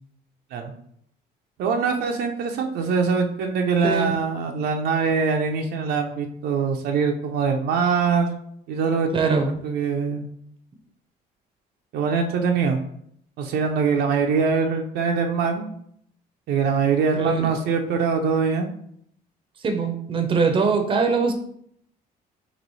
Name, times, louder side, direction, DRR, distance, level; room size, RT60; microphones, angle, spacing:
voice 1, 1.6-8.3 8.7-10.3 11.9-12.8 13.4-15.6 16.5-18.7, right 5 dB, 70° right, 3 dB, 0.5 m, -23 dB
voice 2, 9.1-9.6 17.2-17.5 19.6-21.3, right 4 dB, 30° right, 5 dB, 0.6 m, -22 dB
3.1 x 2.9 x 4.0 m, 0.68 s
cardioid pair, 110°, 17 cm